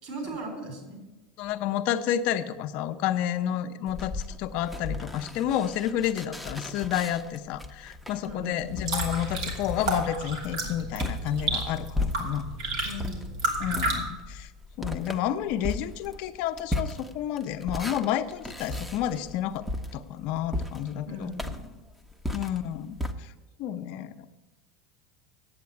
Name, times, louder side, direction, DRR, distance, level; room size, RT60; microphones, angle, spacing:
voice 1, 0.0-1.0 8.2-8.5 12.8-13.4 21.1-21.7, equal, 55° right, 3 dB, 3.7 m, -38 dB
voice 2, 1.4-12.5 13.6-14.5 14.8-19.6 19.9-21.3 22.3-23.3 23.6-24.3, left 11 dB, 60° left, 9 dB, 0.7 m, -30 dB
sound 1, 3.9-12.6 13.0-23.1, left 1 dB, 5° right, 0.8 m, -36 dB
sound 2, 8.6-14.0, right 2 dB, 80° right, 2.8 m, -31 dB
8.7 x 7.7 x 8.3 m, 1.1 s
supercardioid pair, 110°, 3 cm